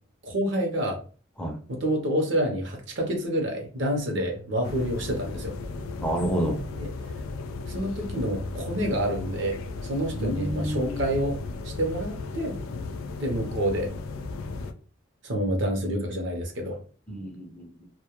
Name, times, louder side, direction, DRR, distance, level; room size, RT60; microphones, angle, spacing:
voice 1, 0.2-1.0 1.7-5.5 6.8-6.9 7.7-9.6 9.8-11.4 11.6-12.6 13.2-13.9 15.2-16.8, equal, 60° right, 3 dB, 0.6 m, -28 dB
sound 1, 4.6-14.7, left 3 dB, 85° left, 0.3 m, -35 dB
voice 2, 6.0-6.6 10.1-11.1 17.1-17.9, equal, 5° left, 0 dB, 0.4 m, -29 dB
2.2 x 2.1 x 2.9 m, 0.40 s
head